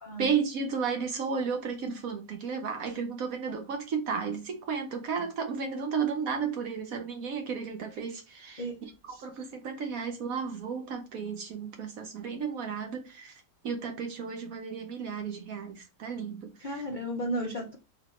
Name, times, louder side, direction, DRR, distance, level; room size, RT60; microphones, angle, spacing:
voice 1, 0.2-8.6 9.2-13.3 13.6-16.5, right 6 dB, 60° right, 1.0 m, -33 dB
voice 2, 16.6-17.8, right 1 dB, 60° left, 0.5 m, -34 dB
3.1 x 2.7 x 4.2 m
omnidirectional pair, 1.9 m